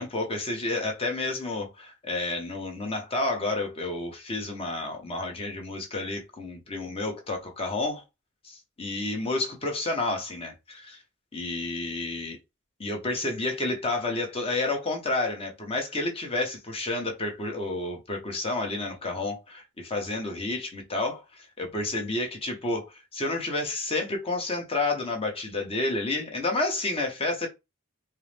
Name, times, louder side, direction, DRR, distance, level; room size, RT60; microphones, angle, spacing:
voice 1, 0.0-8.0 8.4-11.0 11.3-12.4 12.8-27.5, left 2 dB, 30° left, 1.1 m, -30 dB
4.4 x 2.1 x 3.4 m
head